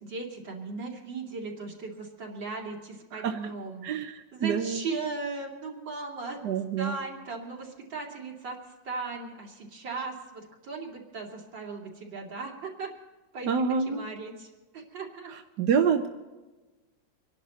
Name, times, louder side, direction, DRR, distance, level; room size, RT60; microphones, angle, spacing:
voice 1, 0.0-3.9 4.3-6.4 6.8-8.6 8.8-12.9 13.3-13.5 13.9-15.3, right 4 dB, 85° right, -1 dB, 3.3 m, -37 dB
voice 2, 3.1-3.5 3.8-4.8 6.4-7.0 13.4-14.0 15.3-16.1, right 6 dB, 65° right, 5 dB, 1.4 m, -27 dB
25.5 x 11.5 x 4.1 m, 1.2 s
omnidirectional pair, 2.0 m